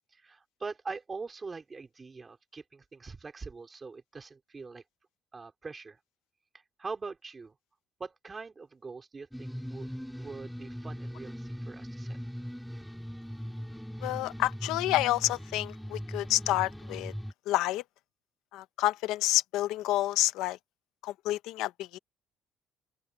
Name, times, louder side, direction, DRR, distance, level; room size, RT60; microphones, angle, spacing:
voice 1, 0.1-4.8 5.3-6.0 6.5-7.6 8.0-9.9 10.2-12.2, right 4 dB, 20° right, 4.2 m, -43 dB
sound 1, 9.3-17.3, equal, ahead, 4.3 m, -40 dB
voice 2, 14.0-17.1 17.5-17.8 18.5-20.6 21.0-22.0, left 16 dB, 85° left, 1.0 m, -29 dB
open air
cardioid pair, 160°, 0 cm